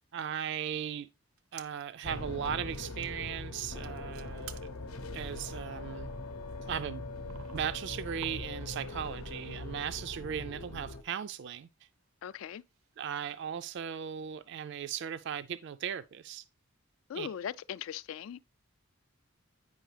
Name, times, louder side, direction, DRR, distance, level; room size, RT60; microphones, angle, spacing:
voice 1, 0.1-1.1 1.5-4.6 5.1-6.1 6.7-7.0 7.5-11.7 13.0-16.4 17.1-17.3, right 8 dB, 55° right, 0.3 m, -37 dB
sound 1, 1.4-2.0 2.3-2.4 2.7-3.3 3.6-8.9 9.1-9.9 10.1-10.2 10.8-13.0 13.4-13.5, right 8 dB, 85° right, 0.6 m, -54 dB
sound 2, 2.0-11.0, left 2 dB, 80° left, 0.8 m, -41 dB
voice 2, 12.2-12.6 17.1-18.4, left 8 dB, 65° left, 0.3 m, -39 dB
9.0 x 5.4 x 3.2 m
head